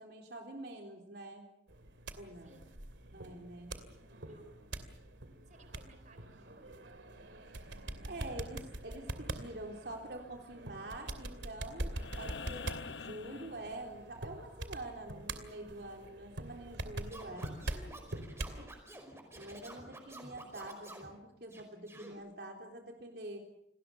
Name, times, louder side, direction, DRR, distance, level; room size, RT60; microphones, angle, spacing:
voice 1, 0.0-1.5 2.2-2.6 3.1-3.7 8.0-17.5 19.4-23.5, right 1 dB, 60° right, 2 dB, 3.6 m, -46 dB
sound 1, 1.7-18.6, right 1 dB, 85° right, 2.6 m, -44 dB
voice 2, 2.4-2.7 3.7-4.6 5.5-6.8 19.6-19.9, right 2 dB, 40° right, 8 dB, 4.0 m, -60 dB
sound 2, 11.9-14.3 16.1-16.2, left 5 dB, 80° left, 0.9 m, -46 dB
Scratching (performance technique), 17.1-21.1 21.5-22.1, right 1 dB, 15° right, 5.1 m, -50 dB
29.0 x 20.0 x 6.9 m, 0.80 s
head